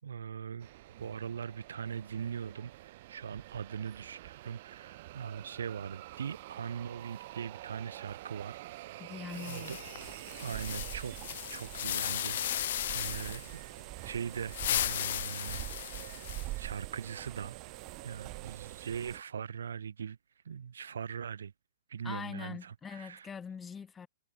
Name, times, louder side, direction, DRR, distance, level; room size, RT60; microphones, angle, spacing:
voice 1, 0.0-8.6 9.3-9.8 10.4-11.1 11.5-13.4 14.0-16.1 16.6-17.6 18.0-20.2 20.4-21.5 21.9-23.3, right 7 dB, 85° right, 3.5 m, -41 dB
sound 1, 0.6-19.2, right 17 dB, 50° right, 3.9 m, -49 dB
voice 2, 9.0-9.8 22.0-24.1, left 6 dB, 15° left, 4.6 m, -43 dB
sound 2, 9.3-13.5 14.3-16.7, left 12 dB, 65° left, 1.0 m, -36 dB
sound 3, 10.0-19.2, right 19 dB, 35° right, 2.8 m, -45 dB
hypercardioid pair, 135°, 0 cm